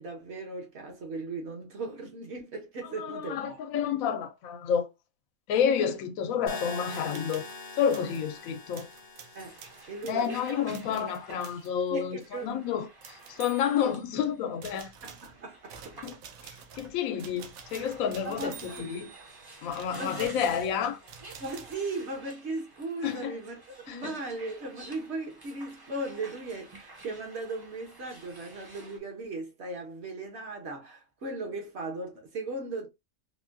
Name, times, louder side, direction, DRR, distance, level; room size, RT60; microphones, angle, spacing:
voice 1, 0.0-3.6 9.3-9.6 9.9-11.0 11.9-12.7 15.0-16.2 17.8-17.9 18.2-18.9 20.0-20.5 21.4-32.9, right 2 dB, 55° right, 1.2 m, -37 dB
voice 2, 3.0-4.9 5.5-7.4 7.8-8.9 10.1-12.9 13.3-14.9 16.0-16.2 16.7-19.1 19.6-21.0 23.0-23.3 23.9-24.1, left 8 dB, 85° left, 1.0 m, -29 dB
sound 1, 6.5-10.5, left 3 dB, 50° left, 0.7 m, -43 dB
sound 2, 6.8-7.6 7.9-8.2 8.7-11.7 12.2-12.4 13.0-14.2 14.6-21.8, right 7 dB, 85° right, 1.0 m, -49 dB
sound 3, 9.4-29.0, right 2 dB, 25° right, 0.5 m, -52 dB
3.6 x 2.2 x 2.6 m
omnidirectional pair, 1.4 m